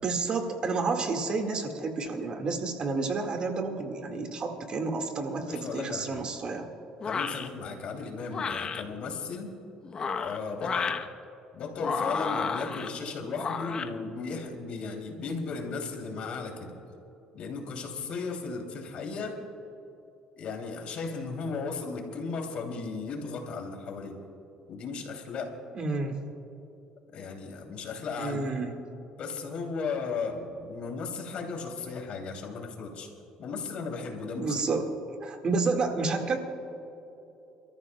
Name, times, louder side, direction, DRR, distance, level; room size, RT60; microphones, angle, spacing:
voice 1, 0.0-6.7 25.7-26.2 28.2-28.8 34.4-34.9 35.2-36.4, right 3 dB, 40° right, 4 dB, 1.8 m, -30 dB
voice 2, 5.4-6.2 7.1-9.5 10.2-10.9 11.5-16.7 17.3-19.4 20.4-24.2 24.7-25.5 27.1-28.5 29.2-33.1 33.4-34.6, left 4 dB, 60° left, 2 dB, 2.8 m, -36 dB
sound 1, 7.0-7.5 8.3-8.8 9.8-11.1 11.8-12.9 13.4-13.9, left 5 dB, 35° left, 0.9 m, -31 dB
29.5 x 14.0 x 2.3 m, 2.9 s
cardioid pair, 110°, 2 cm